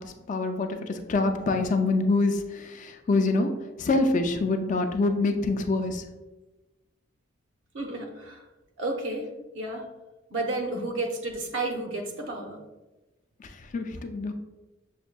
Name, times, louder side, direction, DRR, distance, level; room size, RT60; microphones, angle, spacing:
voice 1, 0.0-3.5 3.8-6.0 10.8-10.9 13.4-14.3, left 3 dB, 40° left, 6 dB, 0.4 m, -26 dB
voice 2, 7.7-8.4 8.8-9.3 9.5-9.8 10.3-12.6, right 2 dB, 80° right, 3 dB, 0.7 m, -31 dB
6.3 x 2.6 x 2.2 m, 1.1 s
head